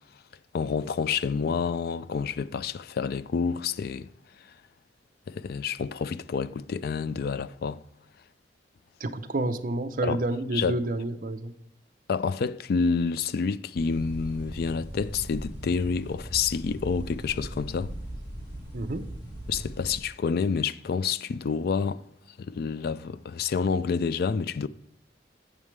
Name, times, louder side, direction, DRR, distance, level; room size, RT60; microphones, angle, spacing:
voice 1, 0.5-4.1 5.3-7.8 10.0-10.2 10.5-10.8 12.1-17.9 19.5-22.0 22.4-24.7, left 5 dB, 60° left, 0.3 m, -28 dB
voice 2, 9.0-11.5 18.7-19.1, right 2 dB, 50° right, 0.6 m, -29 dB
sound 1, 13.7-20.0, right 1 dB, 20° left, 1.8 m, -39 dB
8.2 x 7.2 x 3.2 m
head